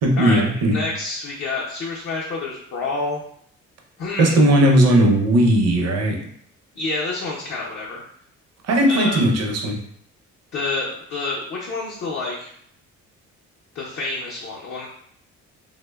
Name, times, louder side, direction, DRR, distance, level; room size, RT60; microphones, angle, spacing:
voice 1, 0.0-0.8 4.2-6.2 8.7-9.8, right 1 dB, 55° right, 1 dB, 0.6 m, -17 dB
voice 2, 0.7-3.2 4.0-4.4 6.8-8.0 8.9-9.3 10.5-12.5 13.7-14.9, left 3 dB, 45° left, -4 dB, 0.5 m, -28 dB
2.7 x 2.1 x 2.2 m, 0.66 s
cardioid pair, 90°, 30 cm